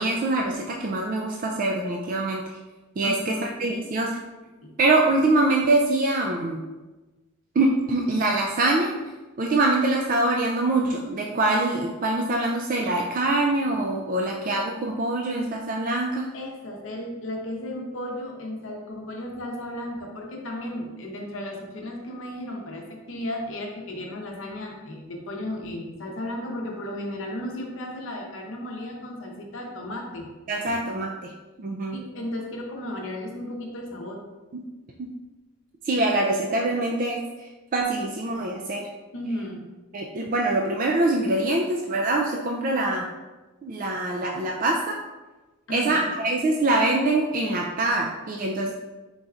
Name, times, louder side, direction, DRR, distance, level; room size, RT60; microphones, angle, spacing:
voice 1, 0.0-2.4 3.0-4.2 4.8-6.6 7.6-8.9 9.4-16.3 30.5-31.3 31.6-32.0 34.5-34.6 35.0-35.1 35.9-38.9 39.9-43.0 43.6-45.0 45.7-48.7, right 2 dB, 40° right, -1 dB, 0.3 m, -24 dB
voice 2, 3.0-3.9 4.6-4.7 16.3-30.3 31.9-34.2 39.1-39.7 45.7-46.2, left 1 dB, 60° left, 0 dB, 0.7 m, -34 dB
4.4 x 3.9 x 2.4 m, 1.2 s
head